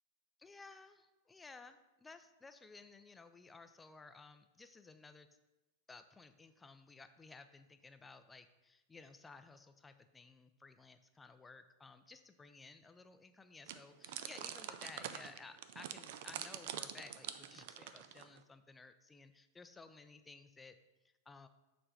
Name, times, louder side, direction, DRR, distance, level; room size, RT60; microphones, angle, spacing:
voice 1, 0.4-5.3 5.9-20.8 21.3-21.5, left 4 dB, 10° left, 9 dB, 0.4 m, -56 dB
sound 1, 13.7-18.4, right 10 dB, 50° right, 0.3 m, -46 dB
6.6 x 3.3 x 5.4 m, 1.0 s
figure-of-eight pair, 90°, 0 cm